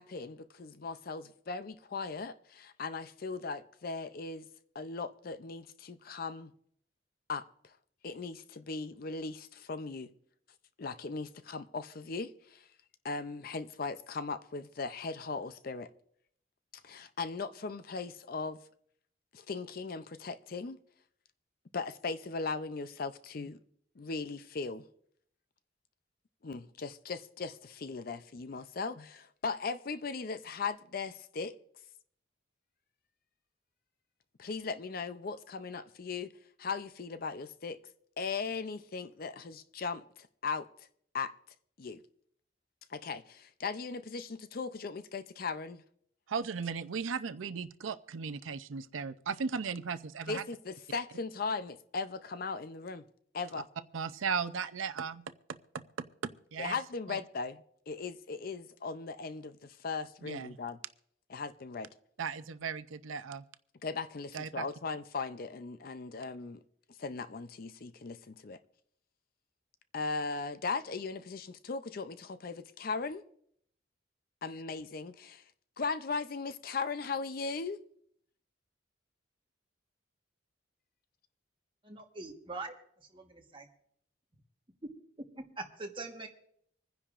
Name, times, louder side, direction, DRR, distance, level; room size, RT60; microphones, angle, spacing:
voice 1, 0.0-4.5 4.7-6.5 7.3-7.8 8.0-10.1 10.8-12.7 13.0-15.9 16.8-18.6 19.3-20.8 21.7-23.6 24.0-24.8 26.4-31.6 34.4-36.3 36.6-37.8 38.2-40.9 41.1-41.3 41.8-42.0 42.9-45.8 50.3-53.0 53.3-53.7 56.6-60.8 61.3-61.9 63.8-66.6 67.0-68.6 69.9-73.2 74.4-75.4 75.8-77.8, left 4 dB, 50° left, 0.5 m, -38 dB
voice 2, 46.3-50.4 53.9-55.2 56.2-56.7 57.1-57.2 60.2-60.5 62.2-63.4 64.3-64.6, right 5 dB, 90° right, 0.6 m, -36 dB
voice 3, 81.8-82.7 83.0-83.7 84.8-84.9 85.2-86.3, right 2 dB, 25° right, 1.2 m, -43 dB
26.0 x 10.0 x 2.5 m
head